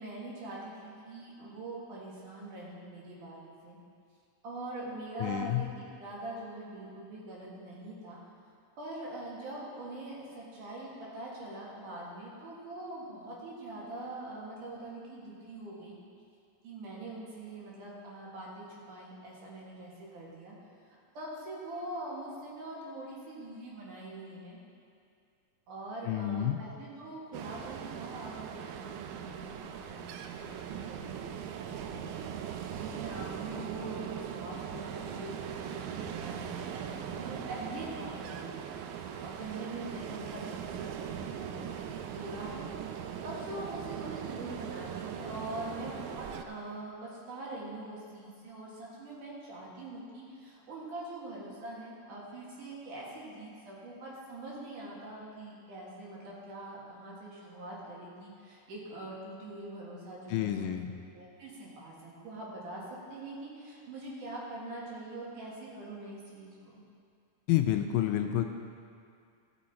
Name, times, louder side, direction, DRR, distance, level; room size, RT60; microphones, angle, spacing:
voice 1, 0.0-3.4 3.6-3.8 4.4-8.2 8.8-16.0 16.6-20.5 20.9-24.6 25.7-41.8 42.1-42.7 43.2-60.8 61.1-66.8, right 2 dB, 65° right, -5 dB, 3.2 m, -43 dB
voice 2, 5.2-5.6 26.1-26.6 60.3-60.9 67.5-68.5, left 12 dB, 80° left, 6 dB, 2.1 m, -29 dB
Ocean, 27.3-46.5, right 9 dB, 85° right, 2.3 m, -40 dB
16.0 x 6.2 x 4.2 m, 2.4 s
omnidirectional pair, 4.0 m